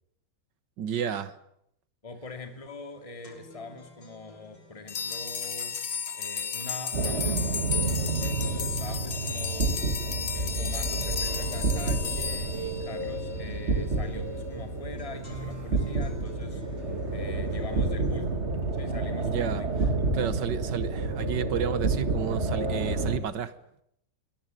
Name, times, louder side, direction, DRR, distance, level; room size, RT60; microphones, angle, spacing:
voice 1, 0.8-1.3 19.2-19.6 20.1-23.5, right 8 dB, 70° right, 1.7 m, -31 dB
voice 2, 2.0-5.8 6.1-7.6 8.1-9.9 10.3-18.4 18.7-20.5, left 2 dB, 15° left, 2.6 m, -43 dB
sound 1, 2.3-2.4 2.7-18.3, left 1 dB, 80° left, 7.3 m, -53 dB
sound 2, 4.9-13.4, left 6 dB, 40° left, 1.0 m, -34 dB
sound 3, 6.9-23.2, right 3 dB, 35° right, 2.3 m, -29 dB
23.5 x 17.5 x 9.3 m
omnidirectional pair, 2.0 m